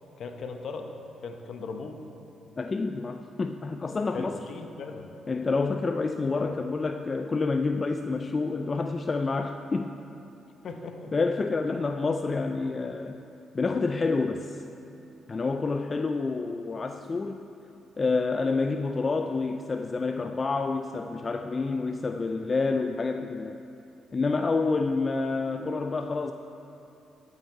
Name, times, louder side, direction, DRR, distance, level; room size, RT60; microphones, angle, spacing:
voice 1, 0.2-0.9 1.2-2.0 4.1-5.1 10.6-11.1, left 4 dB, 60° left, 5 dB, 0.9 m, -38 dB
voice 2, 2.6-4.4 5.3-9.9 11.1-13.2 13.5-14.6 15.3-17.5 18.0-23.6 24.1-26.3, left 3 dB, 35° left, 7 dB, 0.4 m, -28 dB
11.5 x 7.9 x 4.6 m, 2.9 s
cardioid pair, 80°, 0 cm